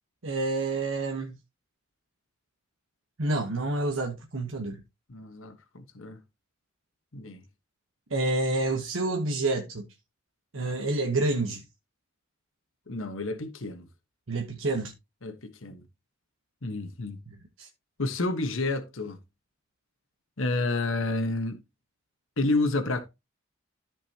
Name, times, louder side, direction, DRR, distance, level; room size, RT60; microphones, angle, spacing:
voice 1, 0.2-1.4 3.2-4.8 8.1-9.8 10.5-11.6 14.3-14.9 17.6-17.7, right 2 dB, 75° right, 1.2 m, -28 dB
voice 2, 5.1-6.2 7.1-7.4 12.9-13.9 15.2-15.8 16.6-17.2 18.0-19.2 20.4-21.6 22.4-23.1, left 2 dB, 80° left, 1.3 m, -30 dB
13.5 x 5.3 x 2.9 m
head